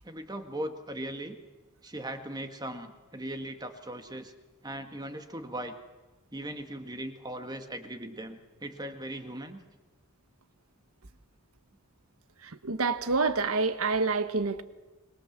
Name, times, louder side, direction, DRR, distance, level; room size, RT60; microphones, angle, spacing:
voice 1, 0.0-1.4 1.8-4.3 4.6-5.8 6.3-9.6, right 1 dB, 20° right, 1.8 m, -39 dB
voice 2, 12.4-14.6, right 4 dB, 75° right, 1.3 m, -27 dB
25.5 x 22.0 x 7.4 m
head